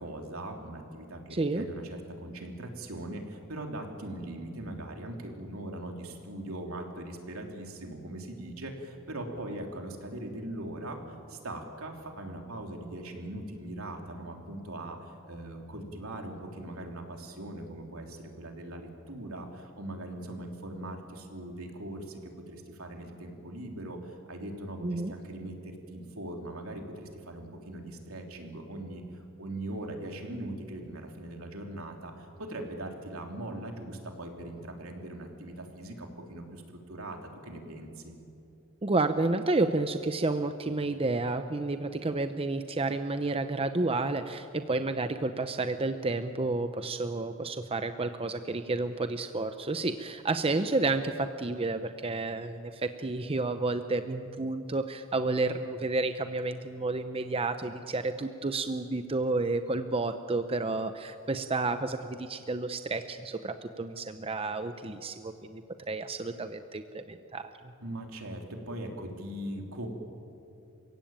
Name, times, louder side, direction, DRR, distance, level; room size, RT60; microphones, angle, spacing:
voice 1, 0.0-38.1 67.8-69.9, right 1 dB, 75° right, 2 dB, 3.3 m, -40 dB
voice 2, 1.3-1.6 24.8-25.1 38.8-65.6 65.9-67.5, right 2 dB, 25° right, 9 dB, 0.7 m, -30 dB
29.5 x 16.5 x 8.9 m, 2.7 s
head